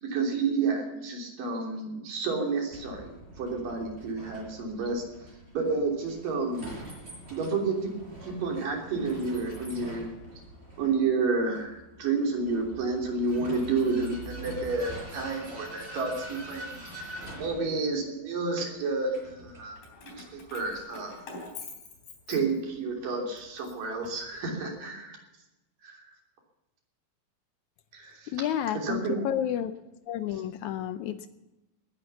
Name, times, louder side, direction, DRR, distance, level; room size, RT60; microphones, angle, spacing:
voice 1, 0.0-5.0 5.5-6.8 7.3-7.9 8.2-10.1 10.8-19.8 20.0-21.1 22.3-25.2 25.8-26.0 27.9-28.3 28.8-29.3, right 4 dB, 65° right, 1 dB, 4.8 m, -30 dB
Vehicle, 2.7-20.8, right 1 dB, 15° right, 5.7 m, -45 dB
Keys jangling, 19.8-22.9 23.4-24.6, left 3 dB, 65° left, 5.2 m, -46 dB
voice 2, 28.3-29.7 30.1-31.3, left 10 dB, 85° left, 11 dB, 1.7 m, -30 dB
19.0 x 10.5 x 6.9 m, 0.99 s
omnidirectional pair, 4.3 m